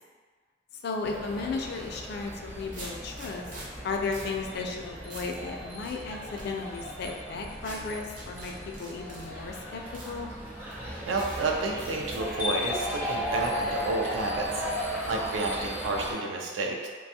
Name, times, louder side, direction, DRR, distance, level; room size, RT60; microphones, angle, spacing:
voice 1, 0.7-3.5 3.8-8.5 8.8-10.3, left 4 dB, 60° left, 2 dB, 0.3 m, -35 dB
sound 1, 1.0-16.1, equal, 10° right, 0.5 m, -36 dB
sound 2, 1.9-2.1 2.7-3.7 4.1-4.3 4.7-4.8 5.1-5.4 5.9-6.4 7.6-7.8 8.2-9.3 9.9-10.1 10.7-10.8 11.2-11.4 11.8-12.2, right 1 dB, 45° right, 0.7 m, -44 dB
voice 2, 11.0-14.7 15.1-16.9, right 3 dB, 85° right, 0 dB, 0.4 m, -30 dB
2.5 x 2.2 x 2.7 m, 1.5 s
head